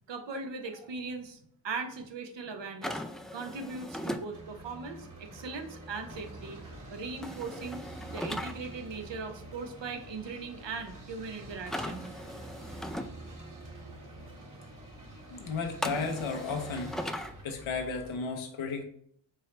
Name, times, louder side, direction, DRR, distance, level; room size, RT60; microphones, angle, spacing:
voice 1, 0.1-1.4 1.6-3.0 3.3-6.6 6.9-7.8 8.1-12.1, right 4 dB, 65° right, 5 dB, 0.9 m, -39 dB
sound 1, 2.8-4.2 7.2-8.5 11.7-13.1 15.8-17.3, equal, ahead, 0.3 m, -38 dB
sound 2, 3.8-18.2, right 1 dB, 45° right, 1.6 m, -47 dB
voice 2, 15.3-16.9 17.2-18.8, left 4 dB, 85° left, 3 dB, 0.9 m, -34 dB
4.5 x 3.1 x 3.3 m, 0.67 s
cardioid pair, 45°, 47 cm